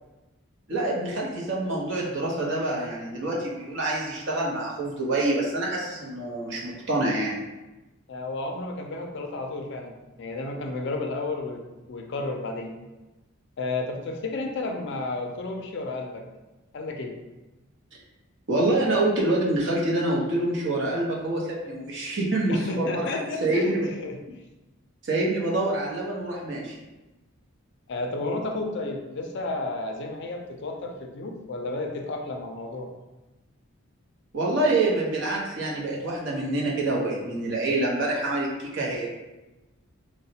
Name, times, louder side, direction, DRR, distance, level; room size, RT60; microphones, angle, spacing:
voice 1, 0.7-7.4 18.5-23.1 23.4-23.9 25.0-26.7 34.3-39.1, right 2 dB, 55° right, -3 dB, 0.7 m, -26 dB
voice 2, 8.1-11.6 11.9-12.8 13.6-16.2 16.7-17.1 22.5-24.2 27.9-32.9, left 2 dB, 55° left, 3 dB, 0.4 m, -32 dB
4.0 x 2.0 x 2.7 m, 1.1 s
head